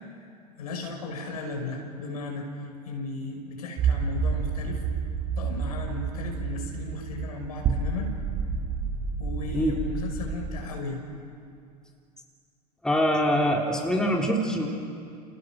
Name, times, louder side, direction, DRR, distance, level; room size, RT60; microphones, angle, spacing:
voice 1, 0.5-2.5 2.8-4.8 5.4-8.1 9.2-11.0, left 2 dB, 65° left, 3 dB, 6.1 m, -35 dB
sound 1, 3.8-10.6, right 5 dB, 35° right, 4.0 m, -30 dB
voice 2, 12.8-14.7, equal, 5° left, 0 dB, 3.3 m, -24 dB
29.5 x 29.5 x 6.5 m, 2.4 s
figure-of-eight pair, 85°, 21 cm